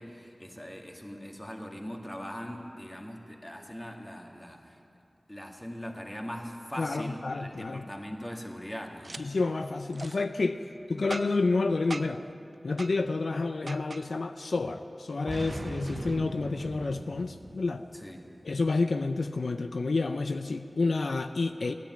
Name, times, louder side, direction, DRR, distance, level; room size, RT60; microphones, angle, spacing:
voice 1, 0.0-4.8 5.3-9.2 17.9-18.3, equal, 20° left, 1 dB, 2.0 m, -41 dB
voice 2, 6.8-7.9 9.2-10.6 10.9-12.2 12.6-17.8 18.4-21.7, left 3 dB, 85° left, 8 dB, 0.5 m, -29 dB
Boom, 9.0-9.2 9.9-10.2 11.1-11.5 11.9-12.3 12.8-13.0 13.7-14.1 15.3-18.0, right 2 dB, 50° right, 0.4 m, -40 dB
15.0 x 10.0 x 9.1 m, 2.7 s
cardioid pair, 40°, 0 cm